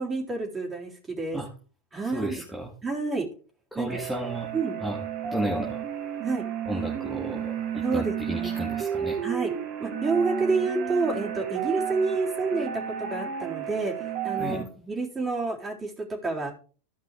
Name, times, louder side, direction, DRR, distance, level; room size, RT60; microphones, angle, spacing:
voice 1, 0.0-1.4 1.9-2.4 2.8-3.3 3.7-4.0 4.5-4.8 6.2-6.4 7.8-8.5 9.2-9.5 9.8-16.5, right 3 dB, 15° right, -1 dB, 3.6 m, -29 dB
voice 2, 2.1-2.7 3.7-4.5 4.8-5.8 6.7-9.2 14.4-14.7, right 1 dB, ahead, -2 dB, 1.9 m, -33 dB
sound 1, 3.9-14.6, right 9 dB, 40° right, 1.8 m, -32 dB
15.5 x 5.2 x 3.6 m, 0.38 s
figure-of-eight pair, 90°, 0 cm